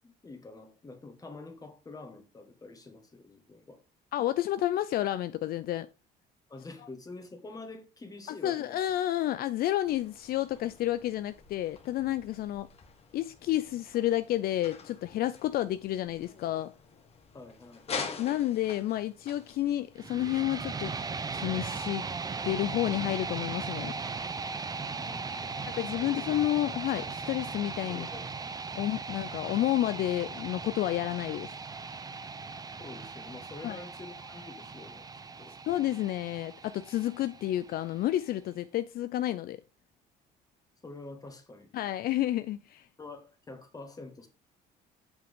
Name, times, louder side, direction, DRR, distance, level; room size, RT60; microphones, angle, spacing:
voice 1, 0.0-3.8 6.5-8.8 17.3-17.8 24.9-25.6 26.0-26.4 27.8-28.3 32.8-35.1 35.4-35.5 40.8-41.7 43.0-44.3, left 3 dB, 20° left, 1.6 m, -47 dB
voice 2, 4.1-5.9 8.3-12.7 13.1-16.7 18.2-20.9 21.3-22.1 22.4-23.9 25.7-28.1 28.7-31.5 33.6-33.8 35.7-39.6 41.7-42.9, left 13 dB, 60° left, 0.4 m, -30 dB
sound 1, 9.8-20.3, left 5 dB, 35° left, 1.4 m, -45 dB
sound 2, 20.0-38.0, right 4 dB, 20° right, 0.7 m, -38 dB
7.4 x 5.8 x 3.7 m
cardioid pair, 110°, 17 cm